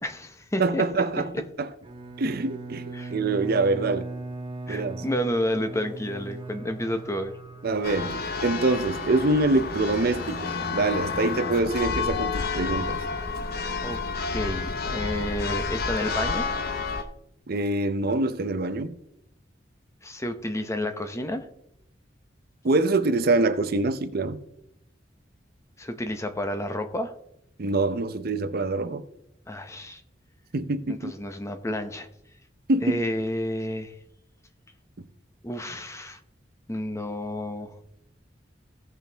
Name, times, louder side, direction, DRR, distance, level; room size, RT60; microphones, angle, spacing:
voice 1, 0.0-0.8 1.2-1.4 2.9-3.1 4.7-7.3 13.8-16.5 20.0-21.5 25.8-27.1 29.5-30.0 30.9-32.1 32.8-33.9 35.4-36.2 36.7-37.8, left 1 dB, 15° left, 0.8 m, -30 dB
voice 2, 0.6-1.3 1.6-1.7 2.2-4.1 4.7-5.0 7.6-13.0 17.5-19.0 22.6-24.4 27.6-29.0 30.5-31.1 32.7-33.0, right 2 dB, 55° right, 0.6 m, -25 dB
Bowed string instrument, 1.8-8.4, right 2 dB, 30° right, 1.1 m, -39 dB
Church bell, 7.8-17.0, left 4 dB, 55° left, 0.7 m, -30 dB
16.5 x 6.1 x 3.4 m
head